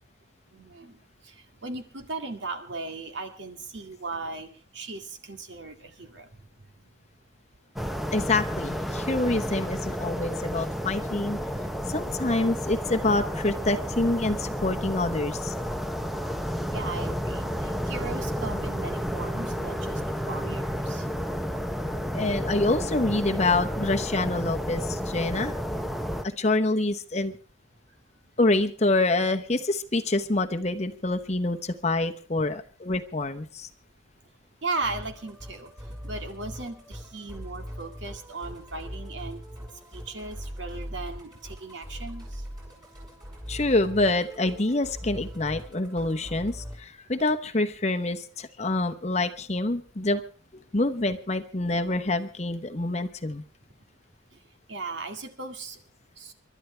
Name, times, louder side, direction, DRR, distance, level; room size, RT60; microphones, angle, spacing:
voice 1, 0.5-1.0 1.2-1.3 1.6-4.5 4.7-6.3 16.7-21.1 34.6-35.7 36.0-39.4 39.9-42.4 54.7-55.8 56.2-56.3, right 3 dB, 65° right, 6 dB, 2.1 m, -37 dB
sound 1, 7.8-26.2, equal, ahead, 0.7 m, -31 dB
voice 2, 8.1-11.4 11.9-15.5 22.1-25.5 26.2-27.4 28.4-33.7 43.5-50.2 50.7-53.4, left 2 dB, 35° left, 6 dB, 0.9 m, -26 dB
Musical instrument, 34.8-46.8, equal, 20° right, 5.8 m, -41 dB
29.5 x 12.0 x 3.4 m, 0.38 s
head